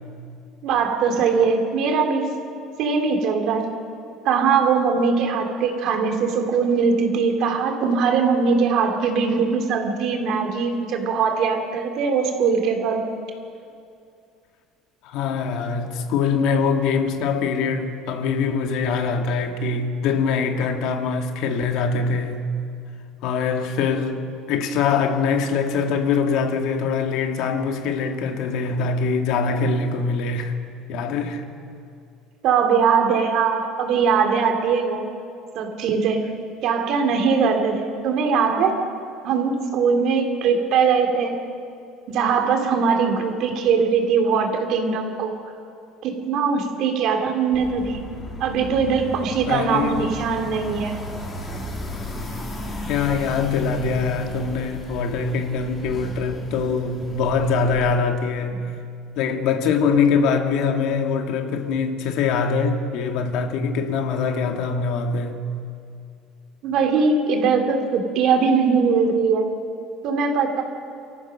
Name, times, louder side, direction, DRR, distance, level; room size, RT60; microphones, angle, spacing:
voice 1, 0.6-2.3 2.8-3.7 4.2-13.1 32.4-35.1 35.5-36.2 36.6-38.8 39.2-41.4 42.1-45.3 46.0-48.0 48.4-51.0 66.6-69.5 70.0-70.6, right 5 dB, 55° right, 2.8 m, -21 dB
voice 2, 15.0-22.4 23.2-24.2 24.5-30.6 30.9-31.4 49.5-50.2 52.9-58.7 59.2-65.4, left 5 dB, 65° left, 1.9 m, -23 dB
sound 1, 47.5-57.9, left 1 dB, 20° left, 3.8 m, -35 dB
28.5 x 14.0 x 6.4 m
cardioid pair, 140°, 0 cm